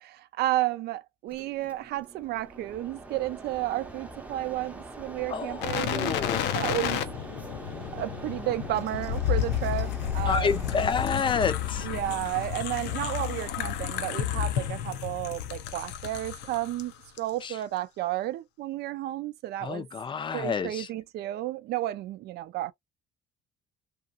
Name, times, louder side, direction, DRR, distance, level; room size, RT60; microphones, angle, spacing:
voice 1, 0.0-6.1 6.5-7.0 7.9-10.6 11.8-16.9 17.2-19.9 20.3-22.7, right 15 dB, 75° right, 0.5 m, -32 dB
Mechanisms, 1.3-13.7, right 2 dB, 10° right, 0.7 m, -44 dB
voice 2, 5.3-6.4 10.3-11.9 17.4-17.5 19.6-20.9, left 5 dB, 30° left, 0.5 m, -29 dB
sound 1, 5.6-16.8 17.2-17.3, left 10 dB, 85° left, 0.6 m, -31 dB
2.9 x 2.4 x 2.3 m
cardioid pair, 110°, 17 cm